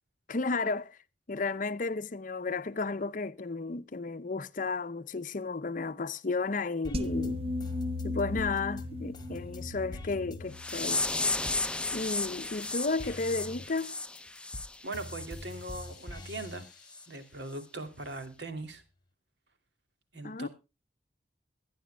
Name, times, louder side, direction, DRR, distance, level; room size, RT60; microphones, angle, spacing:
voice 1, 0.3-1.0 1.3-7.4 8.0-11.0 11.9-14.0 20.2-20.5, left 3 dB, 45° left, 0.6 m, -33 dB
sound 1, 6.8-11.9 12.2-17.4 17.9-18.8, left 1 dB, 25° left, 1.7 m, -46 dB
sound 2, 6.9-12.2, left 2 dB, 35° right, 1.0 m, -37 dB
sound 3, 10.5-15.3 15.6-15.9 16.3-16.5 16.9-17.1 17.5-17.6, left 2 dB, 5° left, 0.6 m, -34 dB
voice 2, 14.8-16.7 17.1-18.8 20.1-20.5, right 2 dB, 70° right, 2.7 m, -40 dB
22.5 x 10.5 x 2.2 m
head